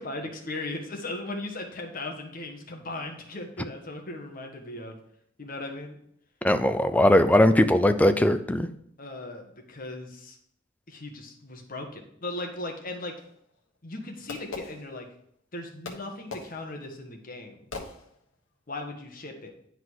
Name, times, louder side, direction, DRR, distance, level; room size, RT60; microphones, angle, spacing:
voice 1, 0.0-5.0 5.4-6.0 9.0-10.4 10.9-13.1 13.8-15.1 15.5-17.6 18.7-19.5, left 2 dB, 45° left, 3 dB, 1.3 m, -37 dB
voice 2, 6.4-8.7, left 1 dB, 10° left, 9 dB, 0.4 m, -20 dB
Fireworks, 13.2-15.4 15.8-18.6, left 3 dB, 90° left, 1.4 m, -42 dB
9.9 x 3.9 x 4.6 m, 0.71 s
head